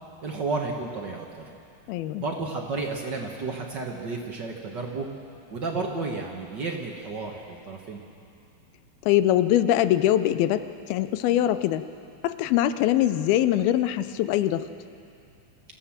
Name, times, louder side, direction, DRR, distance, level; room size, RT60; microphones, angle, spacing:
voice 1, 0.2-1.5 2.2-5.1 5.5-8.0, right 3 dB, 65° right, 0 dB, 1.1 m, -32 dB
voice 2, 1.9-2.2 9.0-11.9 12.2-14.7, left 12 dB, 85° left, 12 dB, 2.5 m, -23 dB
26.0 x 15.0 x 7.3 m, 2.5 s
omnidirectional pair, 4.3 m